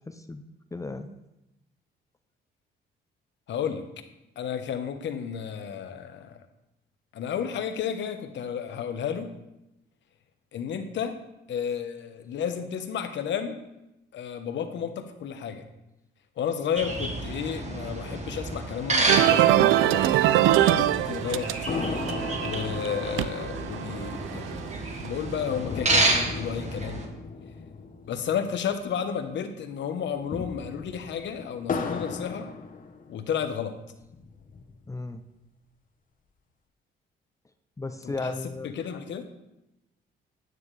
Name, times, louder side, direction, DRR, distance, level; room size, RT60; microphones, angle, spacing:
voice 1, 0.1-0.4 0.7-1.1 34.9-35.2 37.8-38.7, left 3 dB, 15° left, 8 dB, 0.6 m, -34 dB
voice 2, 3.5-3.9 4.4-6.4 7.1-9.3 10.5-11.2 11.5-13.6 14.1-15.6 16.4-20.0 20.6-21.5 22.4-24.7 25.0-27.0 28.1-32.5 33.1-33.8 38.0-38.3 38.6-39.3, left 8 dB, 65° left, 7 dB, 1.0 m, -32 dB
sound 1, 16.8-27.1, right 2 dB, 35° right, 1.7 m, -30 dB
sound 2, 19.1-25.4, right 13 dB, 85° right, 0.4 m, -24 dB
sound 3, 21.7-29.3 29.5-29.6 30.1-33.4 33.9-34.9, left 4 dB, 45° left, 1.1 m, -37 dB
9.4 x 9.3 x 3.3 m, 0.92 s
cardioid pair, 90°, 20 cm